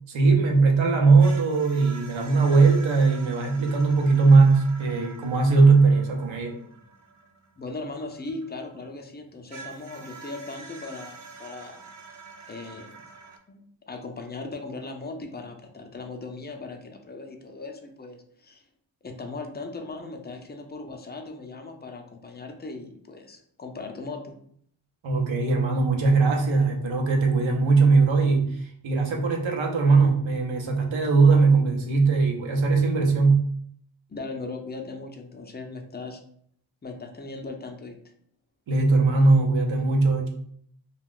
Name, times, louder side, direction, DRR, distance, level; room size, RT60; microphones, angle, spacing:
voice 1, 0.1-6.6 25.0-33.4 38.7-40.3, right 4 dB, 70° right, 1 dB, 0.7 m, -20 dB
sound 1, 1.2-8.9 9.5-13.4, right 4 dB, 35° right, 0.6 m, -46 dB
voice 2, 7.6-11.9 12.5-13.0 13.5-13.6 13.9-18.6 19.0-24.4 34.1-36.2 36.8-38.0, left 3 dB, 20° left, 4 dB, 0.5 m, -38 dB
2.3 x 2.3 x 3.6 m, 0.65 s
cardioid pair, 50°, 48 cm